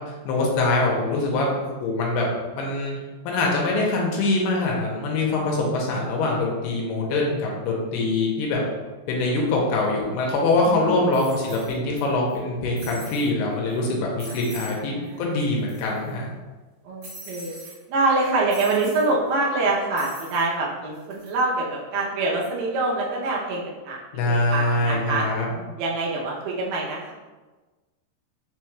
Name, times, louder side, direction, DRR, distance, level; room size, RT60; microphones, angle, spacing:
voice 1, 0.2-2.3 2.5-2.9 3.2-8.6 9.1-16.3 24.1-25.6, left 2 dB, 85° left, -2 dB, 2.6 m, -24 dB
sound 1, 10.3-10.4 11.1-12.0 12.3-12.4 12.8-13.3 13.7-13.8 14.2-14.8 15.1-15.2 15.4-16.1 17.0-17.8 18.5-19.1 20.0-20.5 20.9-21.3, equal, 55° right, 1.9 m, -42 dB
voice 2, 10.7-11.0 14.3-14.4 14.9-15.3 16.9-17.6 17.9-24.0 24.3-25.2 25.8-27.1, right 2 dB, 80° right, -3 dB, 2.6 m, -25 dB
6.3 x 2.3 x 3.0 m, 1.2 s
omnidirectional pair, 4.7 m